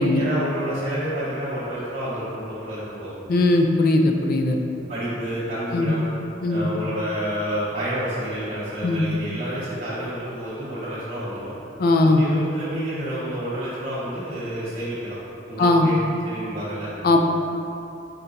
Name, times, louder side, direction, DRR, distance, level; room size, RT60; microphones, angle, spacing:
voice 1, 0.1-3.1 4.9-6.0 6.5-11.5 12.0-15.2 15.5-15.9 16.2-16.9, equal, 40° right, -13 dB, 0.9 m, -29 dB
voice 2, 3.3-4.6 5.7-5.9 6.4-6.7 8.8-9.0 11.8-12.2 15.6-15.9 17.0-17.2, left 2 dB, 50° left, 3 dB, 0.3 m, -19 dB
4.3 x 3.9 x 2.6 m, 2.8 s
head